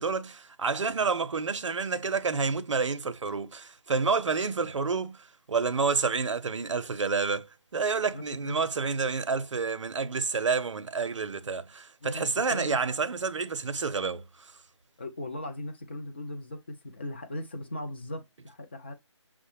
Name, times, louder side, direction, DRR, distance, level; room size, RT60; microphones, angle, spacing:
voice 1, 0.0-5.2 5.5-14.2, right 4 dB, 75° right, 0.5 m, -29 dB
voice 2, 8.1-8.6 12.0-12.8 15.0-18.9, left 1 dB, 20° left, 0.4 m, -38 dB
5.6 x 2.0 x 3.1 m
figure-of-eight pair, 160°, 16 cm